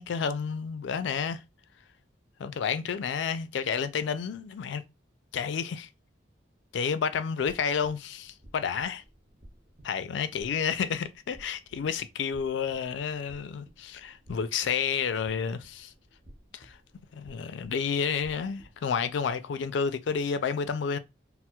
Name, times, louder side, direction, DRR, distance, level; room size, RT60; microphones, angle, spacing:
voice 1, 0.0-1.4 2.4-4.8 5.3-5.9 6.7-9.0 9.8-15.9 16.5-16.8 17.1-21.0, left 6 dB, 75° left, 0.3 m, -30 dB
sound 1, 7.4-18.8, right 1 dB, 35° right, 0.7 m, -55 dB
4.2 x 2.0 x 2.3 m
head